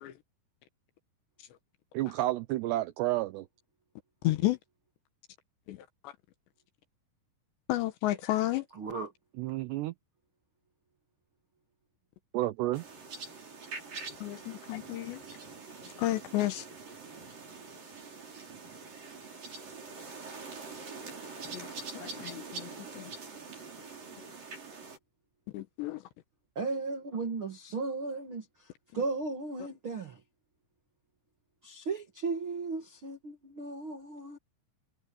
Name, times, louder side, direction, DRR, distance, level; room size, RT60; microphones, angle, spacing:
voice 1, 1.9-3.5 9.4-9.9 12.3-12.8, right 16 dB, 85° right, 2.4 m, -30 dB
voice 2, 4.2-4.6 5.7-6.1 7.7-8.7 14.2-15.2 16.0-16.7 21.4-22.7 23.0-23.1 25.5-26.0, left 16 dB, 75° left, 3.0 m, -32 dB
voice 3, 8.7-9.1 22.1-22.9 26.5-30.2 31.6-34.4, right 4 dB, 60° right, 1.3 m, -36 dB
sound 1, 12.7-25.0, right 4 dB, 45° right, 8.0 m, -44 dB
omnidirectional pair, 5.8 m